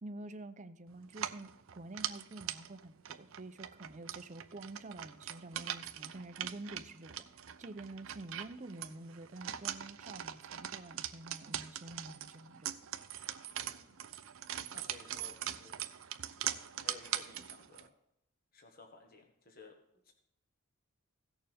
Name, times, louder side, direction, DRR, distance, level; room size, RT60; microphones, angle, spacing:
voice 1, 0.0-7.3 7.6-12.7, right 2 dB, 35° right, 9 dB, 0.6 m, -48 dB
sound 1, 1.1-17.9, right 11 dB, 70° right, 0.6 m, -42 dB
voice 2, 13.6-14.0 14.7-15.9 16.8-17.9 18.5-19.8 20.0-20.1, left 4 dB, 45° left, 3 dB, 1.3 m, -56 dB
16.5 x 6.8 x 3.5 m, 0.80 s
head